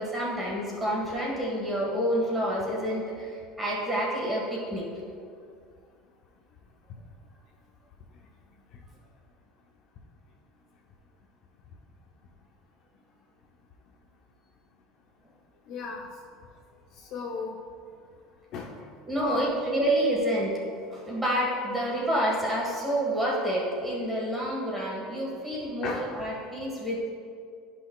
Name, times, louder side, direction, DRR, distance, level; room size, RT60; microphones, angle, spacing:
voice 1, 0.0-4.9 19.1-20.6 20.9-27.1, right 1 dB, 5° right, -5 dB, 1.5 m, -28 dB
voice 2, 15.7-16.1 17.0-17.6 18.5-18.9 19.2-19.5 25.8-26.2, left 4 dB, 40° left, -1 dB, 0.6 m, -34 dB
12.5 x 5.9 x 2.3 m, 2.3 s
cardioid pair, 180°, 0 cm